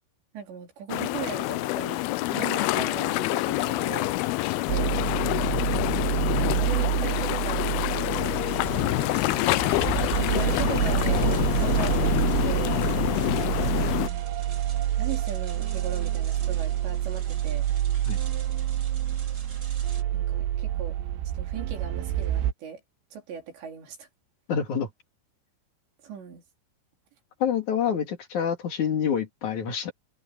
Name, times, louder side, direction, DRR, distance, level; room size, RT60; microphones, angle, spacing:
voice 1, 0.3-4.2 4.5-5.0 6.3-8.4 9.2-9.7 10.2-12.8 13.6-14.0 15.0-17.7 20.1-21.0 21.3-22.8 23.1-24.1 26.0-26.4, right 7 dB, 75° right, 5.8 m, -38 dB
sound 1, 0.9-14.1, left 19 dB, 90° left, 2.2 m, -26 dB
sound 2, 4.7-22.5, right 12 dB, 90° right, 3.3 m, -28 dB
sound 3, 8.2-20.0, right 3 dB, 25° right, 2.1 m, -48 dB
voice 2, 24.5-24.9 27.4-29.9, left 8 dB, 45° left, 3.4 m, -27 dB
omnidirectional pair, 5.1 m